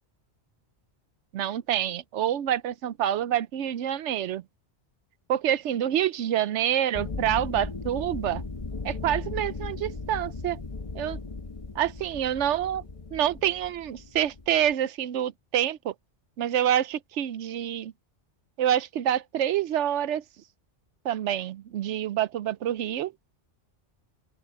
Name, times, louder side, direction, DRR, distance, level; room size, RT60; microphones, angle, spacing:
voice 1, 1.3-4.4 5.3-8.4 8.8-10.6 10.9-11.2 11.7-12.8 13.1-15.9 16.4-17.9 18.6-20.2 21.0-23.1, right 10 dB, 85° right, 1.0 m, -27 dB
sound 1, 6.9-14.7, left 3 dB, 30° left, 1.0 m, -37 dB
open air
omnidirectional pair, 1.2 m